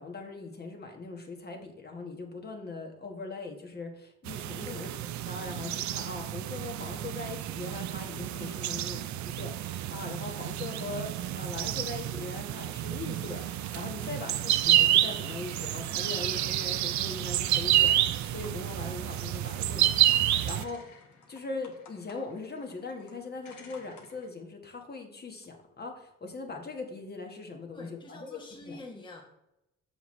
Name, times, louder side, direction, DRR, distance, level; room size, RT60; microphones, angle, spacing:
voice 1, 0.0-4.9 5.3-21.0 21.3-28.8, left 3 dB, 35° left, 3 dB, 1.3 m, -40 dB
sound 1, 4.3-20.6, right 13 dB, 70° right, 0.5 m, -29 dB
voice 2, 4.6-5.2 14.1-14.4 27.7-29.2, left 2 dB, 15° left, -1 dB, 1.1 m, -46 dB
sound 2, 13.2-24.3, left 4 dB, 75° left, 1.5 m, -54 dB
7.0 x 5.8 x 3.1 m, 0.86 s
cardioid pair, 90°, 30 cm